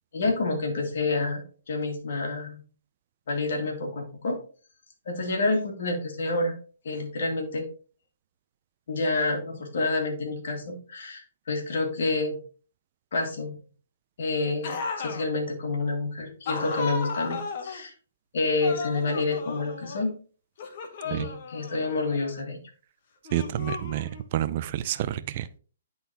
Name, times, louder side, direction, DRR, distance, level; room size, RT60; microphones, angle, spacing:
voice 1, 0.1-2.6 3.3-4.4 5.1-6.6 6.8-7.7 8.9-12.4 13.1-13.6 14.2-17.9 18.3-20.1 21.0-22.6, left 3 dB, 65° left, 3 dB, 2.0 m, -28 dB
sound 1, 14.6-15.3 16.5-17.8 18.6-20.1 20.6-22.3 23.3-24.4, left 5 dB, 45° left, 1.1 m, -35 dB
voice 2, 23.3-25.6, right 12 dB, 40° right, 14 dB, 0.4 m, -29 dB
10.0 x 3.9 x 2.8 m, 0.39 s
hypercardioid pair, 150°, 0 cm